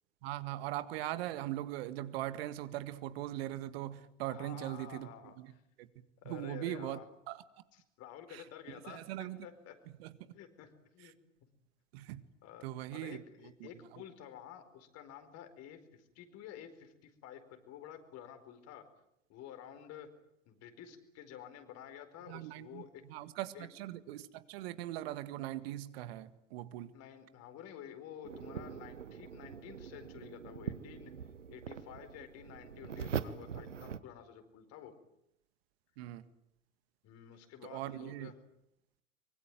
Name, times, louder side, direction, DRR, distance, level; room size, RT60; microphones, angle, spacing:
voice 1, 0.2-5.5 5.8-5.9 6.3-7.0 7.3-7.4 8.3-9.5 10.0-10.1 11.0-11.1 11.9-12.2 12.6-13.2 13.6-14.0 22.3-22.8 23.1-26.9 36.0-36.2 37.6-38.3, right 14 dB, 55° right, 12 dB, 1.9 m, -40 dB
voice 2, 4.3-5.6 6.2-7.0 7.7-9.8 10.3-11.1 12.4-12.6 12.9-18.8 19.3-20.1 20.5-23.0 23.5-23.7 26.9-31.1 31.5-35.0 37.0-38.3, left 9 dB, 45° left, 9 dB, 4.7 m, -51 dB
sound 1, 28.2-34.0, right 7 dB, 80° right, 1.3 m, -43 dB
24.5 x 24.0 x 9.2 m, 0.79 s
figure-of-eight pair, 80°, 36 cm